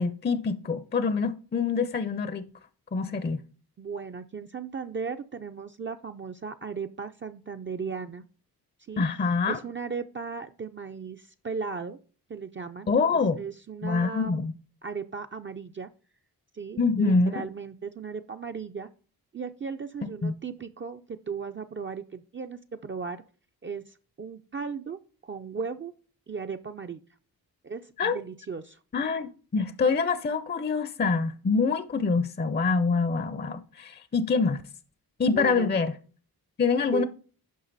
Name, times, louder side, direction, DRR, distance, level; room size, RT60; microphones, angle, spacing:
voice 1, 0.0-2.5 2.9-3.4 9.0-9.6 12.9-13.4 13.8-14.5 16.8-17.5 20.2-20.3 28.0-28.2 28.9-34.6 35.2-35.9 36.6-37.0, left 4 dB, 30° left, 0.5 m, -25 dB
voice 2, 3.8-8.2 8.9-12.0 12.3-14.4 14.8-15.9 16.5-18.9 19.3-23.2 23.6-25.9 26.3-27.0 27.6-28.8 35.2-35.7 36.9-37.0, right 5 dB, 35° right, 0.4 m, -36 dB
10.5 x 5.8 x 4.0 m
wide cardioid pair, 155°, 37 cm